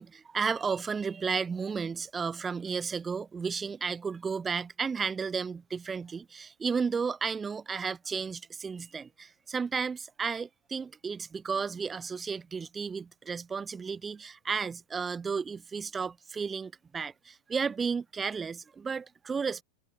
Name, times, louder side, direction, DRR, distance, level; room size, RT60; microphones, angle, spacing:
voice 1, 0.0-19.6, right 5 dB, 15° right, 0.6 m, -33 dB
figure-of-eight pair, 90°, 0 cm